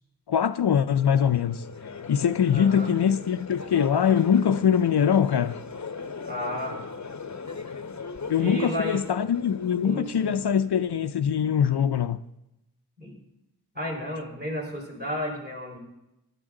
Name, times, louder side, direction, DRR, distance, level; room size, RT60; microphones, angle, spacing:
voice 1, 0.3-1.6 2.1-5.6 8.3-12.2, left 8 dB, 85° left, 0.5 m, -23 dB
Crowd, 0.9-11.1, left 4 dB, 45° left, 0.7 m, -39 dB
voice 2, 2.5-2.9 6.2-6.8 8.4-9.0 9.8-10.4 13.0-13.2 13.7-15.8, equal, 25° right, 4.4 m, -32 dB
15.0 x 11.0 x 3.8 m
wide cardioid pair, 50°, 39 cm